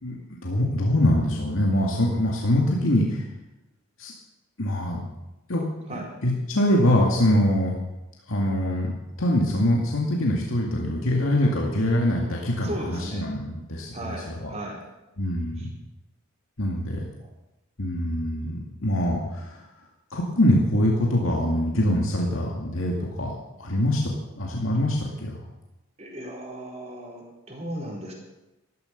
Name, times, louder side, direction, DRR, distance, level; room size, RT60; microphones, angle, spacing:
voice 1, 0.0-3.3 4.0-4.1 4.6-5.0 5.5-5.6 5.9-7.7 8.3-8.9 9.2-14.5 15.2-15.7 16.6-17.0 17.8-19.7 20.1-25.4, left 1 dB, 70° left, -1 dB, 2.2 m, -24 dB
voice 2, 12.6-13.3 13.9-14.8 15.6-15.7 26.0-28.1, right 1 dB, 30° right, -2 dB, 4.4 m, -36 dB
14.0 x 13.0 x 6.6 m, 1.0 s
head